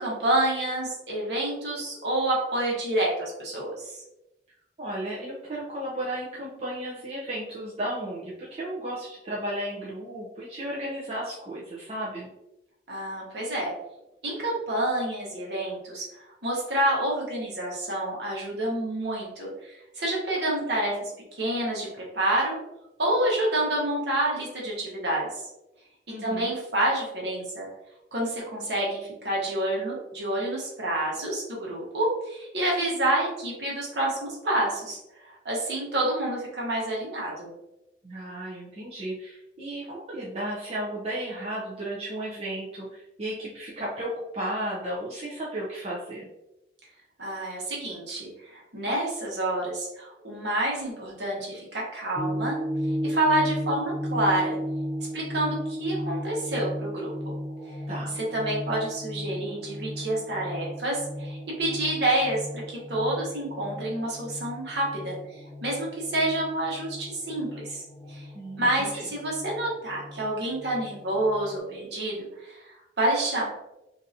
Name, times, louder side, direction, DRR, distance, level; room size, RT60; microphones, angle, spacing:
voice 1, 0.0-4.0 12.9-13.7 14.2-16.1 16.4-22.6 23.0-25.3 26.2-27.7 28.1-35.0 35.2-37.5 47.2-52.6 52.9-54.6 55.1-57.1 58.2-68.2 68.6-73.5, right 1 dB, 65° right, -4 dB, 1.2 m, -28 dB
voice 2, 4.8-12.3 26.1-26.5 38.0-46.3 57.9-58.1 68.3-69.1, right 1 dB, 35° right, -6 dB, 0.6 m, -34 dB
sound 1, 52.1-71.6, equal, 25° left, 0.6 m, -35 dB
3.8 x 2.6 x 2.7 m, 0.91 s
head